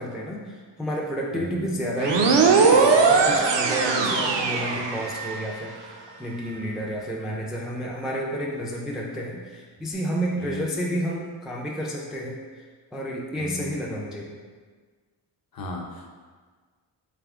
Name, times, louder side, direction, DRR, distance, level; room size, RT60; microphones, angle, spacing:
voice 1, 0.0-12.7 12.9-14.4, equal, ahead, -3 dB, 0.3 m, -31 dB
voice 2, 1.3-1.7 10.4-10.6 13.4-13.8 15.5-16.1, left 1 dB, 50° left, 0 dB, 0.7 m, -35 dB
sound 1, 2.0-5.5, right 4 dB, 70° right, 0.6 m, -20 dB
4.1 x 3.4 x 3.5 m, 1.5 s
wide cardioid pair, 145°, 45 cm